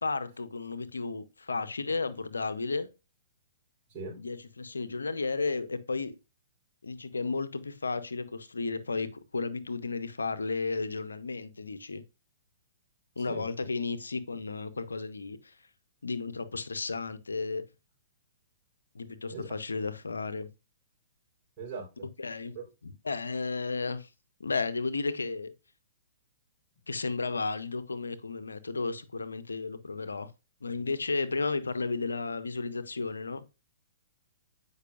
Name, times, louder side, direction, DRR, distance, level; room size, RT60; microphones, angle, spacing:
voice 1, 0.0-2.9 4.2-6.2 6.8-12.0 13.2-15.6 16.0-17.6 18.9-20.5 22.2-22.6 22.8-24.1 24.4-25.5 26.9-30.3 30.6-33.4, left 4 dB, 90° left, 0.7 m, -33 dB
voice 2, 13.3-13.7 19.3-19.5 21.6-22.1 22.6-22.7, right 4 dB, 35° right, 3.7 m, -40 dB
8.2 x 5.4 x 2.4 m
hypercardioid pair, 125°, 0 cm